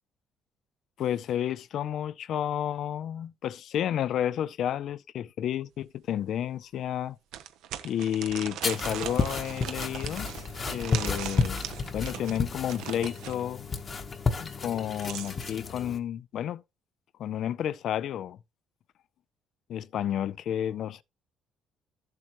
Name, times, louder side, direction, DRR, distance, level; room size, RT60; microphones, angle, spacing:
voice 1, 1.0-7.2 7.8-10.3 10.7-11.6 11.9-13.7 14.4-16.6 17.2-18.4 19.7-21.0, left 10 dB, 55° left, 0.4 m, -31 dB
sound 1, 5.8-5.9 6.4-6.5 7.3-13.4 14.6-15.6, right 10 dB, 85° right, 0.9 m, -39 dB
sound 2, 8.6-16.0, left 4 dB, 25° left, 1.0 m, -32 dB
13.0 x 7.6 x 3.0 m
cardioid pair, 150°, 0 cm